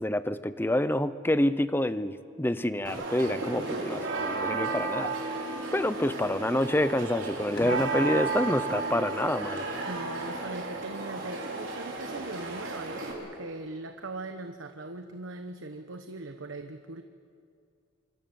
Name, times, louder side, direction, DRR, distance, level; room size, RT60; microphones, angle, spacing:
voice 1, 0.0-5.1 5.7-9.7, left 1 dB, 10° left, 13 dB, 0.7 m, -27 dB
sound 1, 2.8-13.1, right 3 dB, 70° right, 5.0 m, -33 dB
sound 2, 7.6-8.6 8.9-11.3 11.7-12.6, left 1 dB, 25° left, 5.8 m, -44 dB
voice 2, 9.9-17.0, right 2 dB, 90° right, 7 dB, 1.1 m, -40 dB
26.5 x 26.0 x 7.1 m, 2.3 s
head